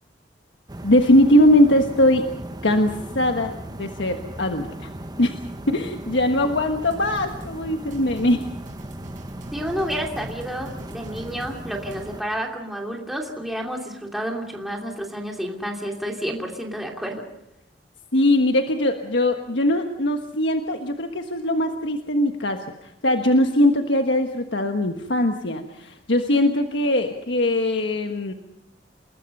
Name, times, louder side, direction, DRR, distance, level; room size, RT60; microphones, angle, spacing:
sound 1, 0.7-12.2, right 1 dB, 20° right, 1.1 m, -37 dB
voice 1, 0.8-2.3 2.6-4.9 5.2-5.3 5.7-8.4 18.1-28.3, left 1 dB, 80° left, 5 dB, 1.4 m, -21 dB
sound 2, 6.8-12.1, equal, 45° right, 5.9 m, -44 dB
voice 2, 9.5-17.3, equal, ahead, 0 dB, 2.8 m, -30 dB
28.5 x 20.0 x 5.5 m, 0.82 s
head